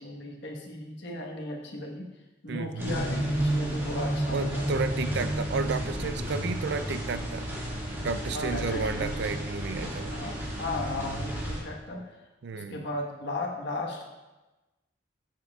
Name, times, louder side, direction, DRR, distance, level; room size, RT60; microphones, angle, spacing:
voice 1, 0.0-2.1 2.4-4.7 8.3-9.3 10.1-12.2 12.5-14.0, left 2 dB, 65° left, 0 dB, 1.3 m, -36 dB
voice 2, 2.5-2.9 4.3-7.5 8.0-10.2 12.4-12.9, right 4 dB, 60° right, 11 dB, 0.4 m, -32 dB
sound 1, 2.8-11.6, right 1 dB, 15° right, 2.0 m, -31 dB
12.0 x 7.3 x 2.3 m, 1.1 s
head